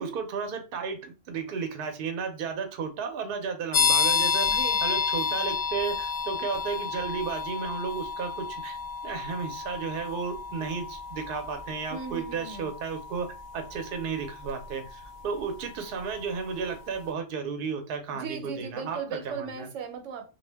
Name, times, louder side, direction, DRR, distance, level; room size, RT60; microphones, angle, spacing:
voice 1, 0.0-4.5 4.8-8.8 9.0-13.3 13.5-19.7, right 5 dB, 60° right, 0.6 m, -33 dB
sound 1, 3.7-16.3, left 6 dB, 65° left, 0.7 m, -31 dB
voice 2, 4.5-4.8 11.9-12.7 18.1-20.3, right 5 dB, 85° right, 0.9 m, -37 dB
2.1 x 2.1 x 3.3 m
omnidirectional pair, 1.3 m